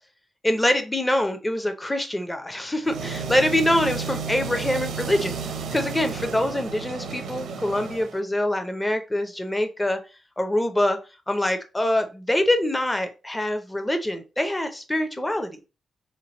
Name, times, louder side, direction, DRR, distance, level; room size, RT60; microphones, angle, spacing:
voice 1, 0.4-5.4 5.7-10.0 10.4-11.0 11.3-15.5, left 1 dB, 10° left, 7 dB, 0.5 m, -24 dB
sound 1, 2.8-8.2, right 5 dB, 80° right, 0.6 m, -32 dB
3.2 x 3.0 x 3.9 m, 0.30 s
wide cardioid pair, 180°, 0 cm